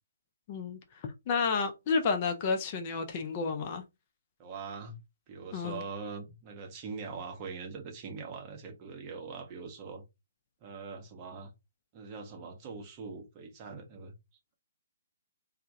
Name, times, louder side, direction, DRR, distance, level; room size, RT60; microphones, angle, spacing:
voice 1, 0.5-3.8 5.5-5.8, left 4 dB, 35° left, 0.4 m, -31 dB
voice 2, 4.4-5.0 5.3-10.0 10.6-11.5 11.9-14.1, right 5 dB, 30° right, 0.7 m, -42 dB
2.2 x 2.0 x 2.7 m
figure-of-eight pair, 130°, 0 cm